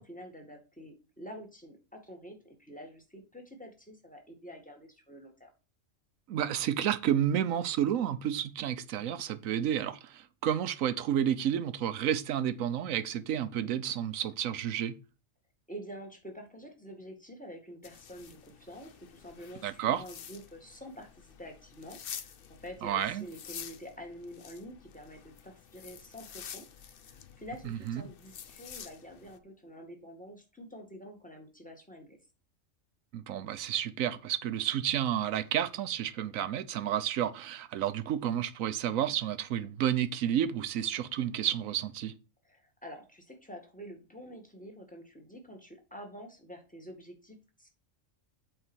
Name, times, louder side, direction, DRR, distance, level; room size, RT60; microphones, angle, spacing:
voice 1, 0.0-5.5 15.7-22.3 22.6-32.2 42.4-47.7, equal, 5° left, 2.0 m, -48 dB
voice 2, 6.3-14.9 19.6-20.0 22.8-23.2 27.6-28.0 33.1-42.1, right 10 dB, 90° right, 1.1 m, -31 dB
sound 1, 17.8-29.4, left 8 dB, 50° left, 0.8 m, -49 dB
7.9 x 4.4 x 6.2 m
omnidirectional pair, 1.3 m